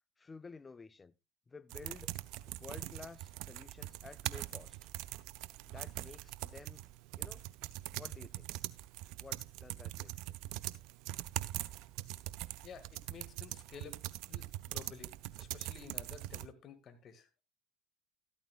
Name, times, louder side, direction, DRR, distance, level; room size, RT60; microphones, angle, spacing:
voice 1, 0.2-1.1 1.5-2.2 2.5-4.8 5.7-6.8 7.2-7.4 8.0-8.5 9.1-10.4, left 4 dB, 20° left, 0.6 m, -52 dB
sound 1, 1.7-16.5, right 16 dB, 65° right, 0.6 m, -43 dB
voice 2, 12.6-14.0 14.3-17.3, left 6 dB, 40° left, 2.0 m, -52 dB
13.0 x 13.0 x 2.4 m
hypercardioid pair, 80°, 0 cm